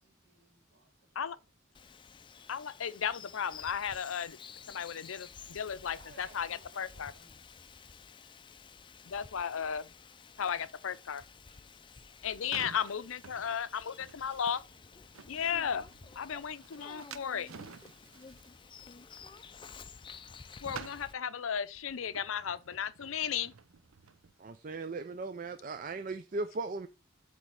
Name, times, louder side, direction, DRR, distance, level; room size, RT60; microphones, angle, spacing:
voice 1, 0.0-1.4 1.7-1.9 5.9-7.5 9.7-9.8 10.3-10.6 10.9-11.0 11.5-11.7 11.9-12.1 12.9-14.4 15.1-15.2 15.8-15.9, right 1 dB, 65° right, 3.0 m, -62 dB
Bird vocalization bird call bird song, 1.7-21.1, left 5 dB, 25° left, 0.4 m, -52 dB
voice 2, 2.5-4.4 4.7-7.1 9.1-9.9 10.4-11.2 12.2-14.6 15.3-15.9 16.2-17.5 20.6-23.5, left 7 dB, 80° left, 0.5 m, -35 dB
sound 1, 12.0-20.4 20.7-24.3, right 6 dB, 85° right, 0.7 m, -51 dB
voice 3, 24.4-26.9, right 3 dB, 40° right, 0.5 m, -37 dB
8.2 x 3.4 x 6.3 m
head